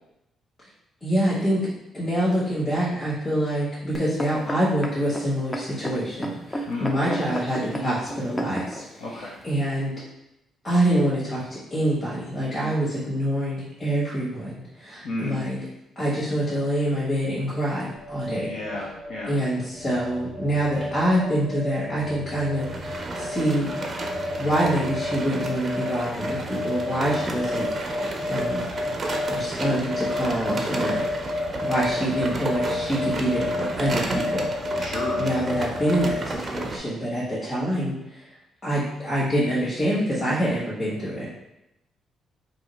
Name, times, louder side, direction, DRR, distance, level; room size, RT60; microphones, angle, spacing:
voice 1, 1.0-1.6 1.9-8.8 9.4-9.9 10.6-15.6 15.9-18.5 19.3-23.7 24.4-28.6 29.3-31.0 31.6-34.8 35.2-38.3 38.6-41.3, right 1 dB, 35° left, -9 dB, 1.4 m, -26 dB
sound 1, 3.9-8.8 9.5-9.6, right 1 dB, 20° left, 0.5 m, -32 dB
voice 2, 9.0-9.4 15.0-15.4 18.5-19.4 34.8-35.2, left 2 dB, 75° left, -6 dB, 0.7 m, -32 dB
sound 2, 17.9-36.3, left 2 dB, 50° left, 1.0 m, -31 dB
sound 3, 22.6-36.8, right 3 dB, 35° right, 0.5 m, -33 dB
2.8 x 2.4 x 4.2 m, 0.87 s
cardioid pair, 90°, 0 cm